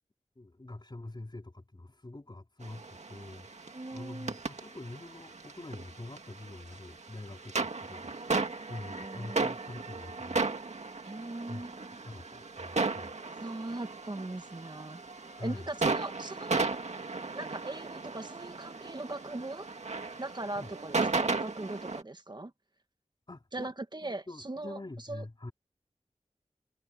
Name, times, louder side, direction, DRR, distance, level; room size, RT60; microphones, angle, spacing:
voice 1, 0.4-10.4 11.5-11.6 12.0-13.1 15.4-15.7 20.5-20.7 23.3-23.7 24.0-25.5, left 2 dB, 40° left, 4.6 m, -45 dB
sound 1, 2.6-22.0, right 3 dB, 85° right, 2.0 m, -35 dB
voice 2, 3.7-4.4 8.8-9.5 11.0-12.1 13.4-15.0 15.4-16.7 17.3-19.7 20.2-22.5 23.5-24.8 25.1-25.2, right 2 dB, 40° right, 1.7 m, -40 dB
wide cardioid pair, 60°, 11 cm